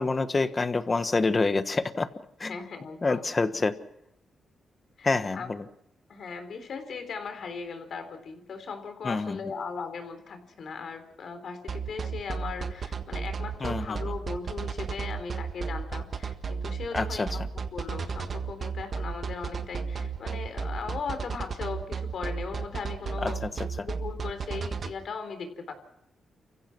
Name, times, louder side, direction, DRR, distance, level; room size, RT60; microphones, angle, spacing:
voice 1, 0.0-2.1 2.4-2.6 3.0-3.8 5.0-5.7 9.0-9.4 13.6-14.0 16.9-17.3 23.2-23.5 23.8-23.9, left 3 dB, 30° left, 11 dB, 1.3 m, -27 dB
voice 2, 2.5-3.3 5.0-5.5 6.1-23.4 23.8-25.7, left 5 dB, 60° left, 8 dB, 3.7 m, -38 dB
sound 1, 11.7-24.9, right 5 dB, 45° right, 1.5 m, -33 dB
29.5 x 15.5 x 6.1 m, 0.80 s
cardioid pair, 110°, 0 cm